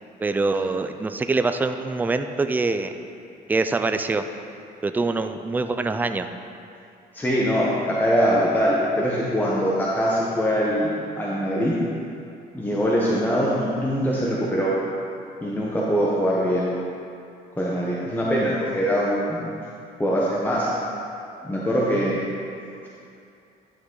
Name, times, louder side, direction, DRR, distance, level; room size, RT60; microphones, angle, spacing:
voice 1, 0.2-2.9 3.5-4.2 4.8-6.3, right 3 dB, 10° right, 8 dB, 0.4 m, -24 dB
voice 2, 7.1-11.8 12.5-14.7 15.4-16.7 17.6-19.5 20.0-20.7 21.4-22.2, equal, 10° left, -6 dB, 1.1 m, -22 dB
10.5 x 6.0 x 3.9 m, 2.6 s
cardioid pair, 110°, 17 cm